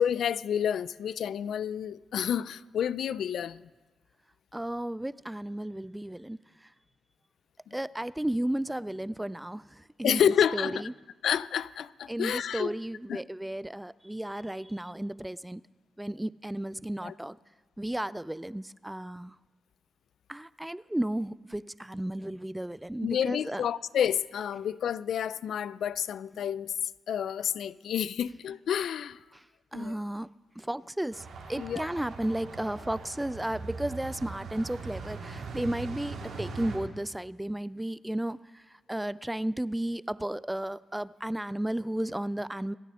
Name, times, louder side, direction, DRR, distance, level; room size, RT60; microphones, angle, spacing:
voice 1, 0.0-3.6 10.0-10.8 11.2-12.7 13.1-13.2 17.0-17.1 23.0-26.7 27.1-29.2 29.7-30.0 31.6-31.9, left 9 dB, 75° left, 18 dB, 0.4 m, -29 dB
voice 2, 4.5-6.4 7.7-10.9 12.1-15.6 16.0-17.4 17.8-19.3 20.3-23.6 29.7-30.3 30.6-38.6 38.9-42.7, right 1 dB, 10° right, 18 dB, 0.4 m, -33 dB
sound 1, 31.1-36.8, right 4 dB, 80° right, 2.8 m, -40 dB
26.5 x 9.1 x 3.8 m, 1.3 s
supercardioid pair, 50°, 0 cm